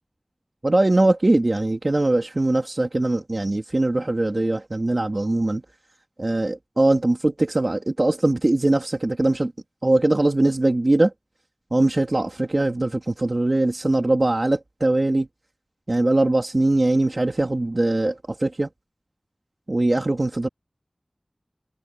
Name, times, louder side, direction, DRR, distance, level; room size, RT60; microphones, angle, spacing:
voice 1, 0.6-5.6 6.2-9.5 9.8-11.1 11.7-15.3 15.9-18.7 19.7-20.5, right 2 dB, 55° right, 2.6 m, -21 dB
wide cardioid pair, 50°, 0 cm